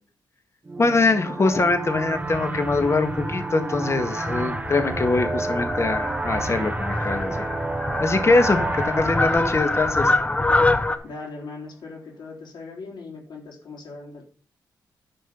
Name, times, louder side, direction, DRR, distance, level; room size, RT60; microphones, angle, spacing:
sound 1, 0.7-11.0, right 3 dB, 20° right, 0.4 m, -31 dB
voice 1, 0.8-7.5 8.0-10.1, left 3 dB, 35° left, 8 dB, 1.7 m, -23 dB
voice 2, 1.3-1.7 11.0-14.2, left 3 dB, 70° left, -2 dB, 4.0 m, -38 dB
Fowl, 1.5-11.0, left 2 dB, 15° left, 0.9 m, -26 dB
10.5 x 5.2 x 5.4 m, 0.42 s
cardioid pair, 80°, 8 cm